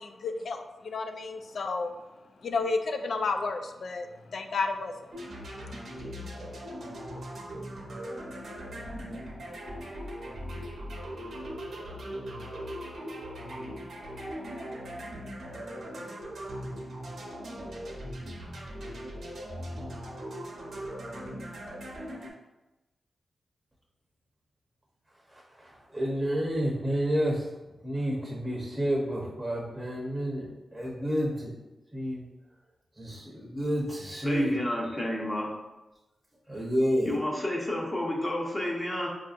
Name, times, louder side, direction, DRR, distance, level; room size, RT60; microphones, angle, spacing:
voice 1, 0.0-1.9 2.4-5.1, left 3 dB, 70° left, 6 dB, 0.3 m, -32 dB
sound 1, 5.1-22.3, equal, 75° right, 0.8 m, -39 dB
voice 2, 25.3-27.5 27.8-31.5 31.9-32.2 33.0-34.9 36.5-37.2, equal, 20° right, -2 dB, 0.7 m, -30 dB
voice 3, 34.2-35.5 37.1-39.1, left 1 dB, 25° left, -2 dB, 0.9 m, -30 dB
4.4 x 2.6 x 2.4 m, 1.0 s
cardioid pair, 65°, 0 cm